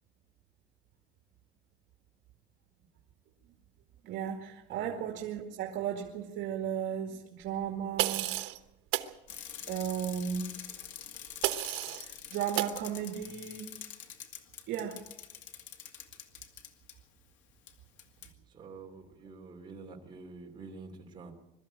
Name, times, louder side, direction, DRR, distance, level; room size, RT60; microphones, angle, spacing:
voice 1, 4.0-8.3 9.7-10.5 12.0-13.7 14.7-15.0, right 9 dB, 65° right, 2 dB, 2.2 m, -35 dB
voice 2, 4.7-5.0 18.4-21.3, right 4 dB, 25° right, 1 dB, 3.0 m, -48 dB
sound 1, 8.0-8.6 8.9-9.1 11.4-12.0 12.6-12.8, right 15 dB, 80° right, 1.2 m, -31 dB
Bicycle, 9.3-16.9 17.7-17.8 18.0-18.3, left 10 dB, 75° left, 2.3 m, -46 dB
22.5 x 13.5 x 8.9 m, 0.91 s
cardioid pair, 180°, 20 cm